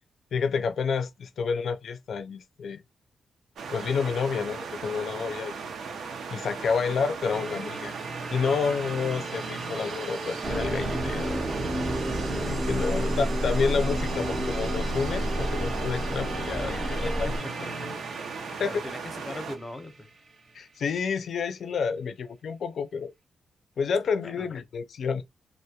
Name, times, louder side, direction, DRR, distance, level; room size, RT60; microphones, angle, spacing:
voice 1, 0.3-2.8 3.7-5.6 6.3-7.9 8.3-11.4 12.3-17.3 18.6-18.8 20.5-23.1 23.8-25.2, left 5 dB, 70° left, 0.4 m, -29 dB
sound 1, 3.6-19.6, right 5 dB, 80° right, 0.5 m, -38 dB
sound 2, 7.2-21.0, right 2 dB, 55° right, 0.8 m, -39 dB
sound 3, 10.4-17.4, equal, 25° right, 0.6 m, -30 dB
voice 2, 12.7-13.1 16.6-17.5 17.8-17.9 18.3-20.1 24.2-24.5, left 2 dB, 25° left, 0.7 m, -41 dB
2.3 x 2.0 x 2.7 m
cardioid pair, 100°, 0 cm